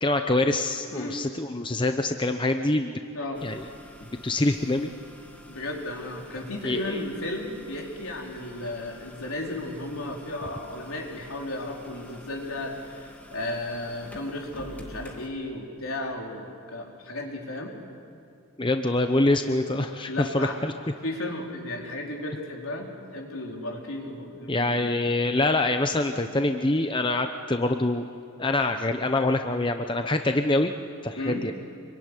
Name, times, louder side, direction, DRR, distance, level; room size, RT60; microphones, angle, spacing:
voice 1, 0.0-3.0 3.4-3.6 4.2-4.9 6.6-7.0 18.6-20.7 24.5-28.1 28.4-30.7 31.0-31.5, left 2 dB, 20° left, 6 dB, 0.8 m, -25 dB
sound 1, 3.3-15.3, left 1 dB, 5° left, 2.2 m, -49 dB
voice 2, 5.5-17.7 20.1-20.6 21.0-24.8 31.2-31.4, left 1 dB, 70° left, 0 dB, 4.5 m, -34 dB
26.0 x 23.0 x 10.0 m, 2.4 s
head